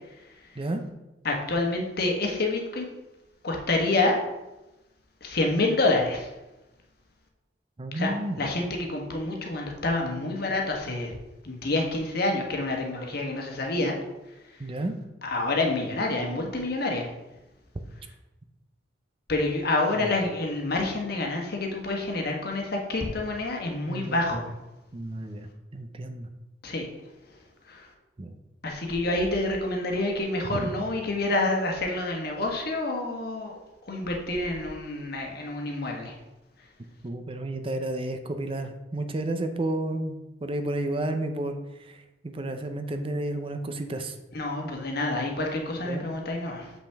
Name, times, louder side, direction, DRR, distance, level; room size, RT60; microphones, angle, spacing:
voice 1, 1.2-2.9 3.4-4.2 5.2-6.3 7.9-11.1 11.4-13.9 14.5-14.6 15.2-17.1 19.3-24.5 26.6-26.9 27.6-27.9 28.6-33.6 33.8-36.2 44.3-46.7, left 2 dB, 55° left, 1 dB, 1.2 m, -28 dB
voice 2, 7.8-8.4 14.6-15.0 20.0-20.1 23.9-24.4 24.9-25.5 25.7-26.3 28.2-28.3 30.5-30.7 37.0-42.0 42.2-44.1 45.8-46.1, right 1 dB, 30° right, 7 dB, 0.5 m, -31 dB
6.9 x 5.6 x 3.5 m, 0.99 s
head